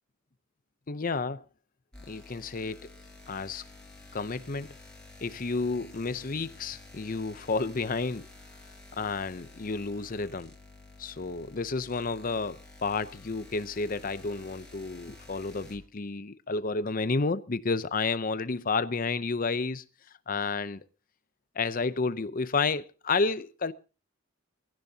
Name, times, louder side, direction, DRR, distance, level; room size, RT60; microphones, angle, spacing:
voice 1, 0.9-1.4 2.1-2.9 3.3-3.6 4.1-4.8 5.2-8.3 9.0-10.5 11.0-19.8 20.3-20.8 21.5-23.7, left 4 dB, 45° left, 0.7 m, -31 dB
sound 1, 1.9-15.8, left 2 dB, 5° left, 4.8 m, -51 dB
23.0 x 16.0 x 2.8 m
head